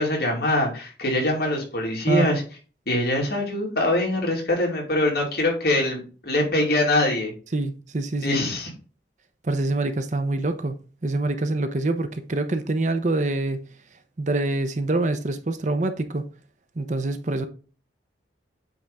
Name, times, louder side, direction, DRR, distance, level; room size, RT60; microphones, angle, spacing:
voice 1, 0.0-2.4 2.9-7.3 8.2-8.7, left 1 dB, 55° left, 2.6 m, -23 dB
voice 2, 7.5-8.4 9.5-10.8 11.0-13.6 14.2-16.2 16.8-17.5, right 2 dB, 40° right, 0.7 m, -25 dB
8.4 x 3.9 x 3.5 m
head